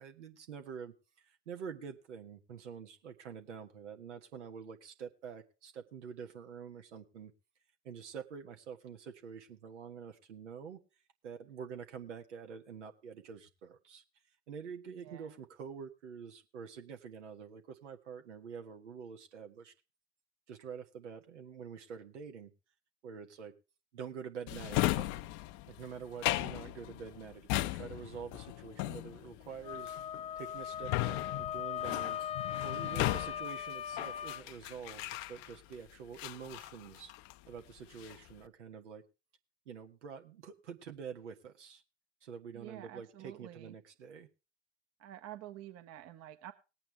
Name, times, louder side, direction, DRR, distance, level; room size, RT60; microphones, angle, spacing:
voice 1, 0.0-7.3 7.8-10.8 11.2-14.0 14.5-19.7 20.5-22.5 23.0-23.5 23.9-25.2 25.7-29.9 30.3-32.2 32.6-37.1 37.5-39.0 39.6-41.8 42.2-44.3, right 7 dB, 75° right, 5 dB, 1.6 m, -47 dB
voice 2, 15.0-15.4 42.5-43.7 45.0-46.5, right 12 dB, 45° right, 10 dB, 1.2 m, -49 dB
Drawer open or close, 24.5-35.7 36.2-37.5 37.8-38.3, left 17 dB, 50° left, 0.8 m, -37 dB
Wind instrument woodwind instrument, 29.6-34.4, left 10 dB, 20° left, 0.6 m, -39 dB
19.5 x 8.8 x 3.4 m, 0.30 s
figure-of-eight pair, 75°, 36 cm